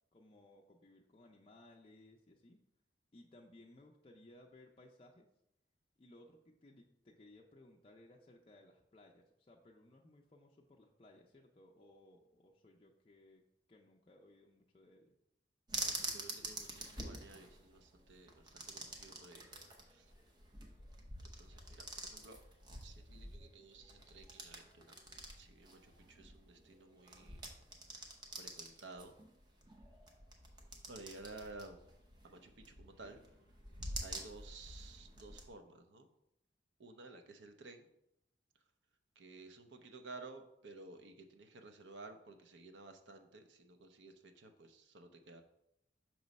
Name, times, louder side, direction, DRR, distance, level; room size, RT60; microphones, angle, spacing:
voice 1, 0.1-2.6 3.1-5.3 6.0-13.4 13.7-15.1, left 1 dB, 30° left, -1 dB, 0.4 m, -61 dB
sound 1, 15.7-35.5, right 1 dB, 25° right, 0.7 m, -48 dB
voice 2, 15.7-19.5 19.8-20.1 21.2-22.4 22.8-24.9 25.4-27.4 28.4-29.2 30.9-31.8 32.2-33.2 34.0-36.1 36.8-37.9 39.2-45.4, right 3 dB, 75° right, 6 dB, 0.7 m, -54 dB
6.1 x 3.1 x 5.1 m, 0.80 s
head